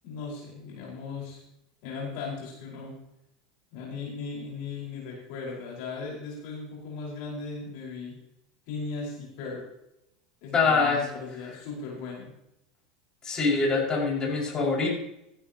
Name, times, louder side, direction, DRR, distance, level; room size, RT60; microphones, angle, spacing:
voice 1, 0.0-1.4 1.8-3.0 3.7-8.2 8.7-9.7 10.4-12.3, left 4 dB, 60° left, -3 dB, 5.1 m, -37 dB
voice 2, 10.5-11.0 13.2-14.9, left 4 dB, 30° left, -3 dB, 5.9 m, -24 dB
17.0 x 11.5 x 3.0 m, 0.84 s
hypercardioid pair, 85°, 2 cm